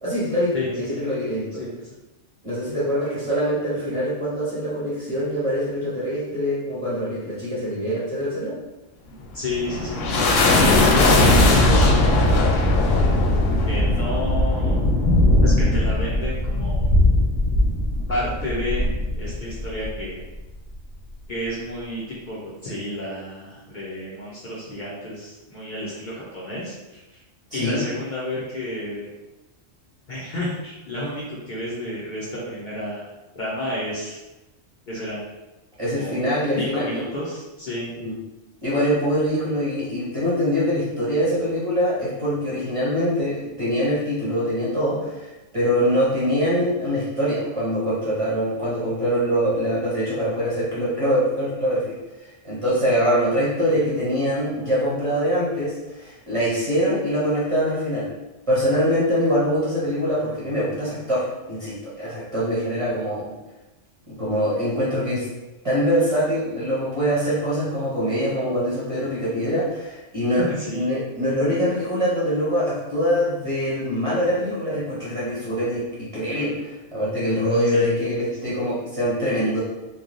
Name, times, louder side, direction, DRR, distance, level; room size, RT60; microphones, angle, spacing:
voice 1, 0.0-1.6 2.4-8.6 11.0-11.2 27.5-27.8 35.8-37.0 38.0-38.2 38.6-58.1 58.5-63.3 64.1-65.3 65.6-70.4 70.7-79.6, equal, 35° right, -9 dB, 0.7 m, -24 dB
voice 2, 0.5-1.0 1.6-1.7 9.3-10.0 10.7-12.9 13.7-14.8 15.4-16.9 18.1-18.8 19.1-20.2 21.3-27.2 27.5-29.1 30.1-33.0 33.3-34.2 34.9-35.3 35.9-36.2 36.6-37.9 53.0-53.8 70.4-70.9 77.6-78.0 78.4-78.5, left 1 dB, 50° left, -7 dB, 0.7 m, -31 dB
sound 1, 9.2-20.0, left 2 dB, 85° left, 0.9 m, -19 dB
3.1 x 2.2 x 2.5 m, 1.0 s
omnidirectional pair, 1.2 m